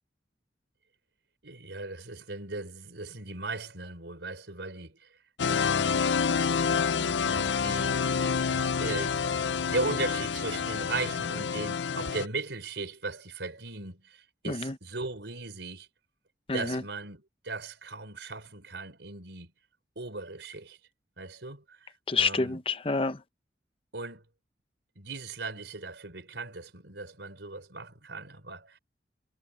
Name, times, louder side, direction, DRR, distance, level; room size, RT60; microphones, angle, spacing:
voice 1, 1.4-5.2 5.5-6.0 6.7-8.2 8.5-15.9 16.5-19.5 20.0-20.8 21.2-22.6 23.9-24.2 25.0-28.8, right 3 dB, 80° right, 4.1 m, -38 dB
sound 1, 5.4-12.3, left 6 dB, 80° left, 0.6 m, -28 dB
voice 2, 16.5-16.8 22.1-23.2, left 4 dB, 30° left, 0.7 m, -28 dB
head